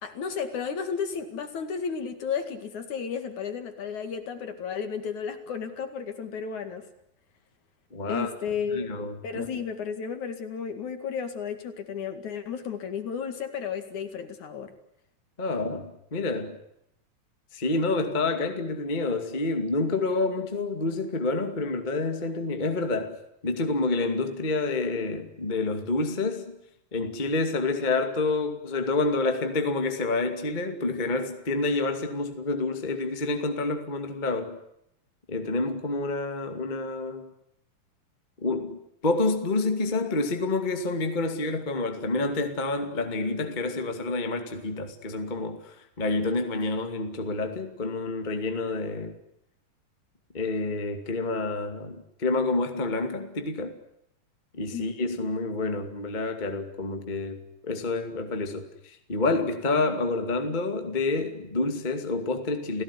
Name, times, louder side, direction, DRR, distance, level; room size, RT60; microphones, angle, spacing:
voice 1, 0.0-6.8 8.1-8.9 9.2-14.7 54.7-54.8, left 6 dB, 60° left, 8 dB, 3.3 m, -33 dB
voice 2, 7.9-8.3 8.7-9.6 15.4-16.6 17.5-23.2 23.4-26.6 26.9-34.6 35.3-37.3 38.4-49.2 50.3-53.8 54.5-62.8, left 3 dB, 15° left, 6 dB, 1.9 m, -28 dB
29.5 x 17.5 x 9.9 m, 0.80 s
omnidirectional pair, 4.1 m